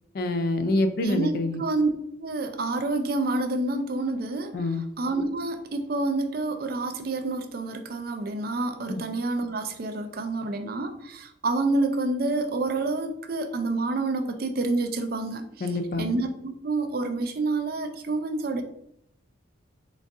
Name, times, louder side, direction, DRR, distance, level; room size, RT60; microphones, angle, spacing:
voice 1, 0.1-1.6 4.5-4.8 8.9-9.0 15.6-16.1, left 2 dB, 50° left, 7 dB, 0.4 m, -26 dB
voice 2, 1.0-1.9 2.2-4.6 5.0-15.7 16.0-18.6, right 2 dB, 50° right, 7 dB, 0.4 m, -28 dB
3.9 x 2.4 x 3.5 m, 0.71 s
head